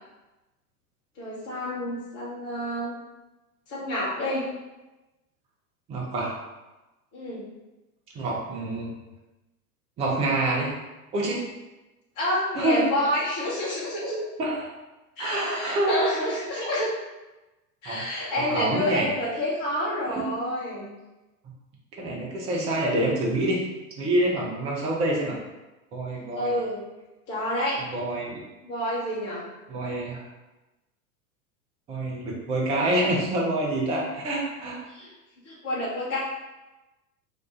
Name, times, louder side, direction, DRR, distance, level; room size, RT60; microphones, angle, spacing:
voice 1, 1.2-3.0 3.7-4.5 7.1-7.5 12.2-14.2 15.2-16.9 17.8-20.9 26.3-26.8 27.3-27.8 28.6-29.5 34.9-35.1 35.4-36.2, left 1 dB, 35° left, -7 dB, 1.2 m, -29 dB
voice 2, 5.9-6.4 8.1-8.9 10.0-10.7 11.1-11.5 12.5-12.9 14.4-14.7 15.2-16.1 17.8-18.0 18.4-19.1 20.2-20.3 22.0-23.6 24.0-25.3 25.9-26.6 27.9-28.4 29.7-30.2 31.9-34.8, right 1 dB, 15° right, -3 dB, 0.4 m, -26 dB
2.8 x 2.3 x 3.7 m, 1.1 s
figure-of-eight pair, 90°, 47 cm